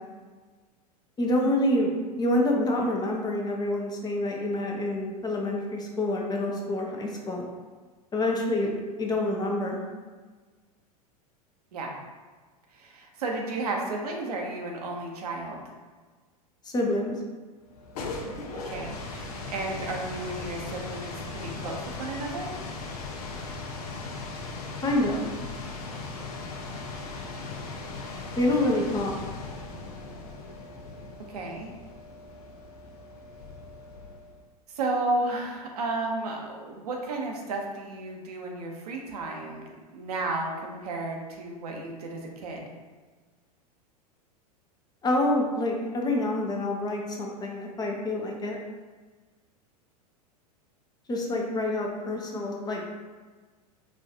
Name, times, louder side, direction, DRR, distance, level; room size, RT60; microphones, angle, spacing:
voice 1, 1.2-1.9 2.2-7.5 8.1-8.7 9.0-9.8 16.6-17.1 24.8-25.3 28.4-29.2 45.0-48.6 51.1-52.8, left 1 dB, 20° left, 0 dB, 0.6 m, -27 dB
voice 2, 12.7-15.6 18.5-22.5 31.3-31.7 34.7-39.6 39.9-42.7, right 2 dB, 75° right, 1 dB, 0.7 m, -33 dB
sound 1, 17.7-34.4, left 3 dB, 70° left, 0.6 m, -38 dB
4.2 x 2.4 x 2.7 m, 1.4 s
hypercardioid pair, 95°, 20 cm